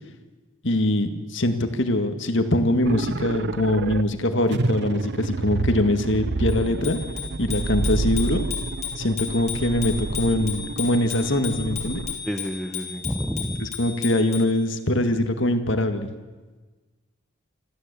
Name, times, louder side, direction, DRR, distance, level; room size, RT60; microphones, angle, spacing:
voice 1, 0.6-7.0 7.4-8.4 9.0-12.0 13.6-16.1, left 1 dB, 55° left, 7 dB, 2.0 m, -23 dB
sound 1, 2.9-4.0 4.5-12.2, right 3 dB, 50° right, 0.7 m, -29 dB
Bicycle bell, 6.5-14.6, left 8 dB, 30° left, 4.7 m, -35 dB
voice 2, 12.2-13.7, equal, ahead, 5 dB, 1.0 m, -29 dB
25.5 x 15.0 x 8.4 m, 1.3 s
head